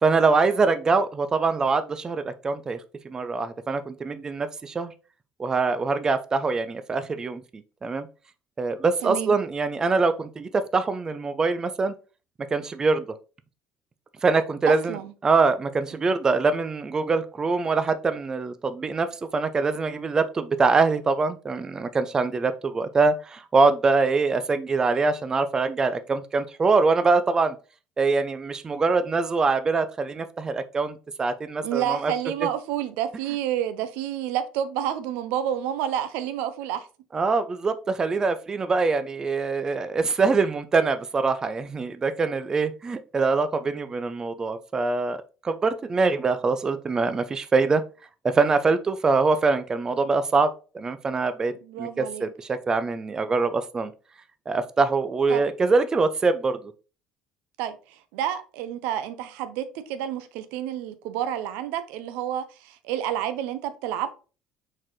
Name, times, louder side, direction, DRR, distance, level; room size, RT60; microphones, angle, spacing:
voice 1, 0.0-2.8 3.0-4.9 5.4-8.1 8.6-11.9 12.5-13.1 14.2-15.0 15.2-27.6 28.0-32.1 37.1-45.2 45.4-47.8 48.2-51.5 51.8-53.9 54.5-56.7, right 4 dB, 25° right, 0.4 m, -24 dB
voice 2, 9.0-9.3 14.7-15.1 31.6-36.9 51.6-52.3 55.3-55.4 57.6-64.1, right 10 dB, 85° right, 0.5 m, -29 dB
4.3 x 4.0 x 3.0 m
cardioid pair, 110°, 3 cm